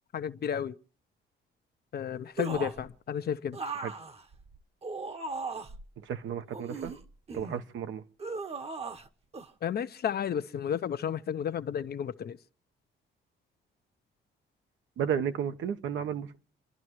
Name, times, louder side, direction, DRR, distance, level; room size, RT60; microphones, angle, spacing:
voice 1, 0.1-0.8 1.9-3.6 9.6-12.4, left 8 dB, 55° left, 0.7 m, -32 dB
sound 1, 2.4-2.9 3.5-5.8 6.5-7.6 8.2-9.1 9.3-9.5, right 4 dB, 30° right, 1.0 m, -38 dB
voice 2, 6.0-6.9 7.3-8.0 15.0-16.4, right 8 dB, 75° right, 1.1 m, -33 dB
29.0 x 11.0 x 3.1 m
cardioid pair, 90°, 20 cm